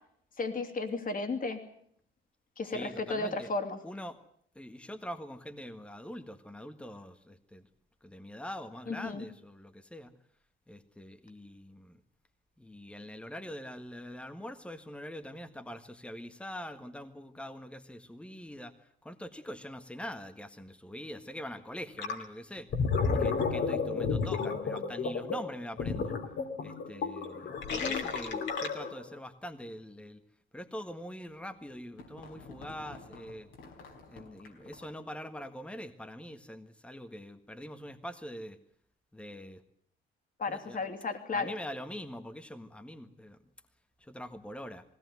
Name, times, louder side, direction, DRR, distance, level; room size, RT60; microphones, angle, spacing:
voice 1, 0.4-1.6 2.6-3.8 8.9-9.2 27.8-28.0 40.4-41.5, left 3 dB, 45° left, 6 dB, 2.9 m, -34 dB
voice 2, 2.6-3.5 3.8-4.2 4.5-7.7 8.0-10.1 10.7-12.0 12.6-18.7 19.0-22.7 23.2-26.1 26.6-30.2 30.5-33.5 34.1-38.6 39.1-39.6 40.5-40.8 41.3-43.4 44.1-44.8, equal, 5° left, 7 dB, 1.6 m, -43 dB
Gurgling, 22.0-22.2 22.6-29.1, left 5 dB, 65° left, 3.0 m, -32 dB
sound 1, 31.3-35.1, left 3 dB, 80° left, 4.4 m, -51 dB
19.5 x 17.5 x 9.4 m, 0.67 s
cardioid pair, 90°, 20 cm